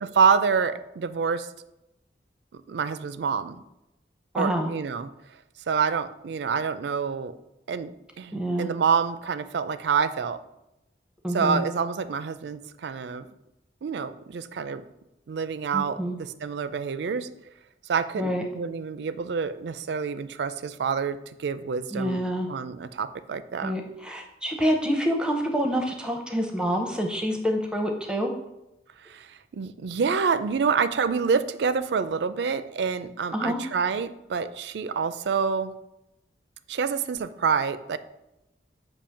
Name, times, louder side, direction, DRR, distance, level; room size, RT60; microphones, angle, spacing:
voice 1, 0.0-1.5 2.5-3.6 4.4-5.1 5.7-7.3 7.7-10.4 11.3-13.3 13.8-14.8 15.3-17.3 17.9-22.2 22.5-23.7 29.0-35.7 36.7-38.0, right 6 dB, 75° right, 13 dB, 0.4 m, -27 dB
voice 2, 4.3-4.7 8.3-8.7 11.2-11.6 15.7-16.2 18.2-18.4 21.9-22.5 23.6-28.3 33.3-33.6, equal, 5° right, 3 dB, 0.6 m, -27 dB
7.0 x 2.8 x 5.6 m, 0.90 s
head